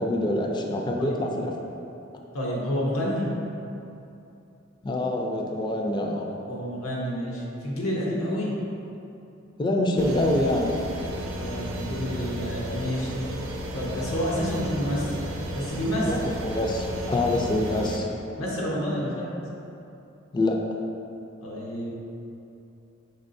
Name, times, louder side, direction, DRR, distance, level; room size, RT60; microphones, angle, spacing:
voice 1, 0.0-1.8 4.8-6.3 9.6-10.7 16.0-18.1 20.3-20.6, left 1 dB, 25° left, 0 dB, 0.4 m, -26 dB
voice 2, 2.3-3.3 6.3-8.5 11.4-13.1 13.7-15.2 15.5-16.1 18.4-19.3 21.4-21.9, equal, 85° left, -4 dB, 0.8 m, -29 dB
sound 1, 10.0-18.0, equal, 80° right, 0.6 m, -33 dB
5.3 x 3.7 x 2.6 m, 2.8 s
head